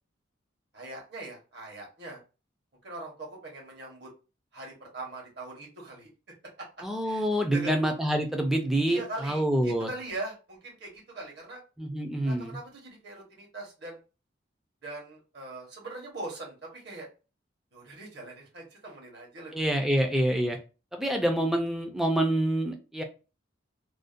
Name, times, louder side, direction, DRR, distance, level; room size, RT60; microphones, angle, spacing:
voice 1, 0.7-2.2 2.8-4.1 4.5-6.1 6.6-6.7 7.0-7.2 7.5-7.8 8.8-11.6 12.2-14.0 14.8-17.1 17.7-19.6, right 2 dB, 55° right, -1 dB, 1.0 m, -41 dB
voice 2, 6.8-9.9 11.8-12.6 19.5-20.6 20.9-23.0, right 1 dB, ahead, 3 dB, 0.3 m, -27 dB
2.5 x 2.1 x 2.5 m, 0.32 s
head